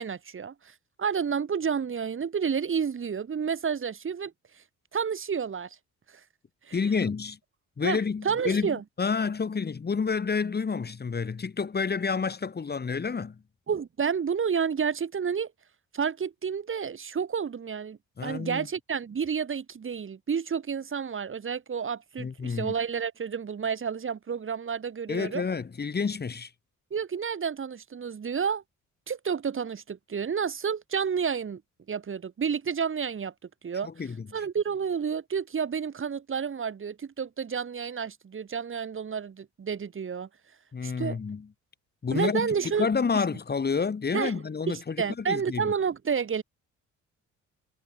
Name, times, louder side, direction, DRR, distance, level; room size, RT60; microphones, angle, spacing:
voice 1, 0.0-4.3 4.9-5.8 6.7-6.8 7.8-8.0 8.2-8.8 13.7-15.5 15.9-25.4 26.9-28.6 29.1-31.6 31.9-33.3 33.6-33.9 34.3-40.3 40.8-41.2 42.1-42.9 43.1-43.2 44.1-44.4 44.7-46.4, right 6 dB, 45° right, 3.2 m, -30 dB
voice 2, 6.7-7.4 7.8-13.4 18.2-18.7 22.2-22.7 25.1-26.5 33.8-34.3 40.7-41.5 42.0-45.7, left 5 dB, 35° left, 2.4 m, -29 dB
cardioid pair, 90°, 30 cm